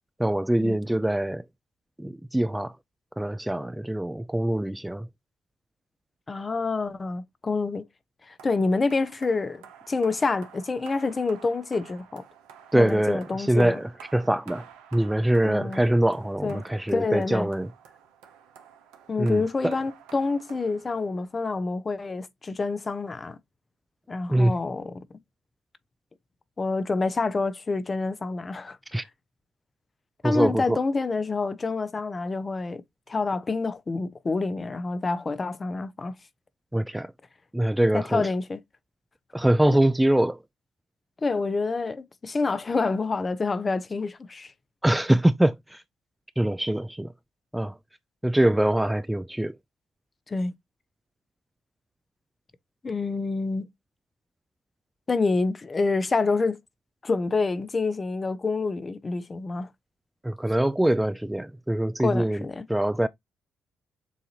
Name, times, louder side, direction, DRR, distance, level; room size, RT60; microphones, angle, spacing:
voice 1, 0.2-1.4 2.0-2.7 3.2-5.1 12.7-13.2 13.5-14.6 14.9-17.7 19.2-19.7 24.3-24.5 28.9-29.0 30.2-30.8 36.7-37.1 37.5-38.3 39.3-40.4 44.8-45.8 46.4-47.1 47.5-47.8 48.2-49.5 60.2-62.4 62.7-63.1, right 1 dB, 10° right, 0.3 m, -23 dB
voice 2, 6.3-7.8 8.3-12.2 12.7-13.8 15.4-15.8 16.4-16.6 16.9-17.5 19.1-23.4 24.1-24.9 26.6-28.8 30.2-32.8 33.1-36.1 37.9-38.6 41.2-44.5 50.3-50.5 52.8-53.6 55.1-56.6 57.0-59.7 62.0-62.6, left 3 dB, 35° left, 0.7 m, -27 dB
sound 1, 8.4-21.4, right 8 dB, 80° right, 0.8 m, -50 dB
7.1 x 2.5 x 2.8 m
hypercardioid pair, 45°, 0 cm